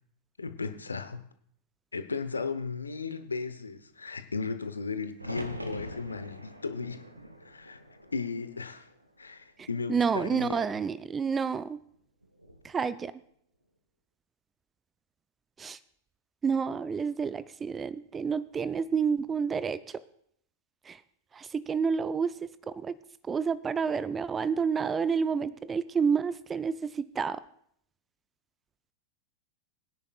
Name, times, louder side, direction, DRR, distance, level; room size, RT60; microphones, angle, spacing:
voice 1, 0.4-1.3 1.9-7.1 7.4-7.8 8.1-8.9 9.2-10.7, left 4 dB, 75° left, 10 dB, 0.9 m, -35 dB
sound 1, 5.2-9.2 9.6-10.4 12.2-12.7, equal, 85° right, 1.0 m, -44 dB
voice 2, 9.6-11.8 12.6-13.2 15.6-15.8 16.4-20.0 20.8-21.0 21.3-23.0 23.2-27.4, right 6 dB, 20° right, 17 dB, 0.4 m, -29 dB
22.0 x 10.0 x 2.4 m, 0.67 s
figure-of-eight pair, 90°, 0 cm